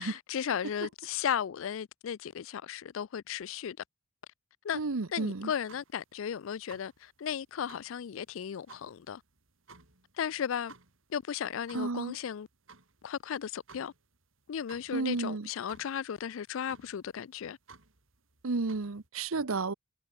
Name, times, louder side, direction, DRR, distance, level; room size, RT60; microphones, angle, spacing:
voice 1, 0.0-3.8 4.6-4.8 5.1-9.2 10.2-10.7 11.1-12.5 13.0-13.9 14.5-17.6, left 8 dB, 70° left, 0.4 m, -35 dB
sound 1, 4.7-19.1, right 4 dB, 70° right, 4.1 m, -58 dB
voice 2, 4.7-5.5 11.7-12.2 14.9-15.5 18.4-19.7, right 3 dB, 85° right, 0.9 m, -32 dB
head